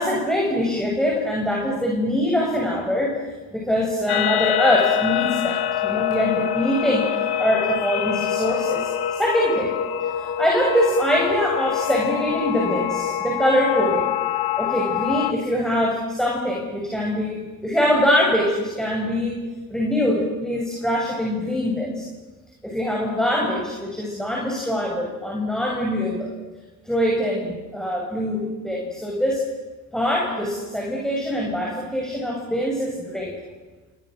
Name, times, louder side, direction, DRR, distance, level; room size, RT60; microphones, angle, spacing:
voice 1, 0.0-3.2 3.5-7.1 7.4-9.7 10.1-14.1 14.6-19.4 19.7-22.1 22.6-26.3 26.8-29.4 29.9-33.4, equal, ahead, -2 dB, 7.4 m, -23 dB
sound 1, 4.1-15.3, left 11 dB, 60° left, 1.9 m, -25 dB
29.0 x 28.0 x 6.5 m, 1.3 s
hypercardioid pair, 55°, 43 cm